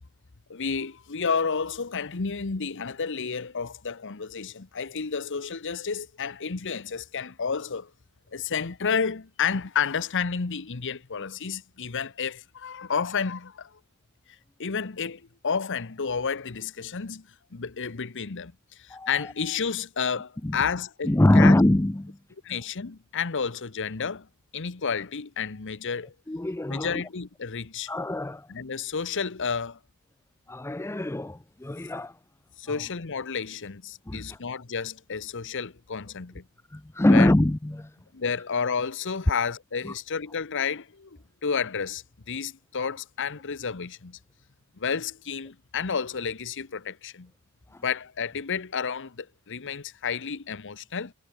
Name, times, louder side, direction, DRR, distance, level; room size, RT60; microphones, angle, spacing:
voice 1, 0.5-7.9 8.3-13.8 14.6-21.5 22.4-24.3 24.5-26.1 26.7-27.9 28.5-29.8 32.6-36.4 37.1-37.3 38.1-44.2 44.8-47.3 47.8-51.1, left 6 dB, 55° left, 1.0 m, -31 dB
voice 2, 18.9-19.3 20.4-20.6 21.0-22.2 26.3-27.0 27.9-28.5 30.5-32.2 32.7-32.8 34.1-34.4 36.7-37.9 39.8-39.9 47.7-47.8, left 1 dB, 10° left, 0.5 m, -23 dB
head